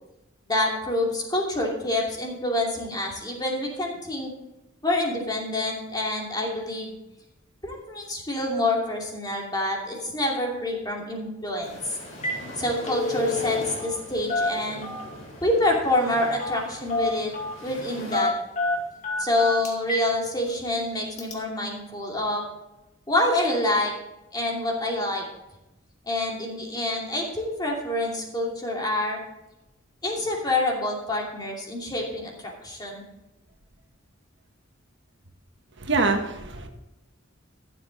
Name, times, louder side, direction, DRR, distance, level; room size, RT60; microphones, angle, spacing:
voice 1, 0.5-4.3 4.8-7.0 7.6-11.8 12.6-14.9 15.4-17.3 17.6-18.3 19.2-22.4 23.1-23.9 24.3-25.3 26.0-29.2 30.0-33.0, left 1 dB, 20° left, -1 dB, 2.7 m, -27 dB
sound 1, 11.6-18.2, left 1 dB, 65° left, 4.4 m, -41 dB
Telephone, 11.6-11.8 12.1-12.4 12.7-14.0 14.3-15.2 16.4-16.6 16.9-17.6 18.1-20.1 20.5-20.6 21.2-21.3, left 2 dB, 35° left, 2.1 m, -28 dB
voice 2, 35.8-36.7, right 3 dB, 60° right, 4 dB, 1.4 m, -24 dB
14.0 x 7.8 x 4.0 m, 0.96 s
head